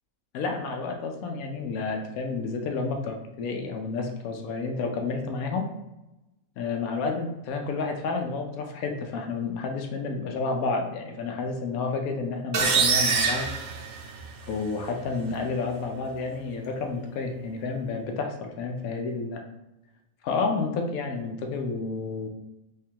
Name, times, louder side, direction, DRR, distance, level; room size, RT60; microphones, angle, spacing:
voice 1, 0.3-5.7 6.6-13.5 14.4-19.4 20.2-22.3, left 4 dB, 85° left, 3 dB, 1.1 m, -30 dB
sound 1, 12.5-14.5, right 5 dB, 75° right, 1.1 m, -24 dB
3.5 x 3.2 x 2.8 m, 0.93 s
omnidirectional pair, 1.5 m